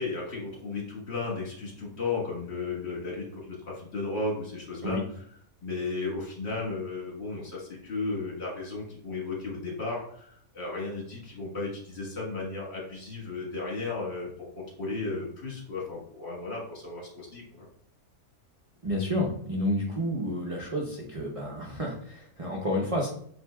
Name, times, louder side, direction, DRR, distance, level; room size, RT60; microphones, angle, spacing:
voice 1, 0.0-5.2 5.6-17.7, left 3 dB, 45° left, -4 dB, 1.8 m, -34 dB
voice 2, 18.8-23.1, left 1 dB, 35° right, -2 dB, 0.6 m, -30 dB
7.2 x 2.7 x 2.3 m, 0.63 s
omnidirectional pair, 1.6 m